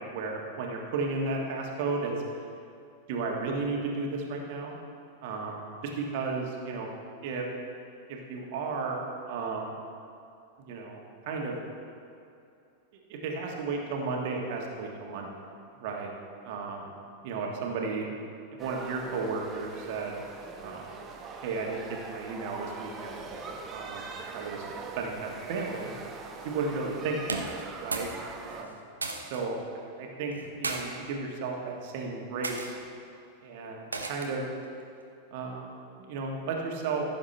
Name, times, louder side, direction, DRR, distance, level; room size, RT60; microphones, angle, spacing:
voice 1, 0.0-2.1 3.1-4.8 5.2-5.6 6.0-6.9 7.2-7.5 8.1-9.0 9.2-9.7 10.6-11.6 13.1-15.3 15.8-16.1 16.4-16.8 17.2-18.1 18.6-20.2 20.6-20.8 21.4-23.2 23.7-24.7 25.0-25.9 26.4-27.4 27.8-28.1 28.5-28.7 29.2-32.8 33.4-34.4 35.3-37.0, right 4 dB, 50° right, 0 dB, 1.6 m, -34 dB
sound 1, 18.6-28.6, right 4 dB, 25° right, 1.0 m, -42 dB
sound 2, 27.2-28.2 28.4-29.4 30.3-30.8 31.6-31.8 32.4-32.7 33.9-34.4, right 3 dB, 80° right, 0.8 m, -34 dB
15.0 x 6.9 x 3.3 m, 2.6 s
figure-of-eight pair, 90°, 0 cm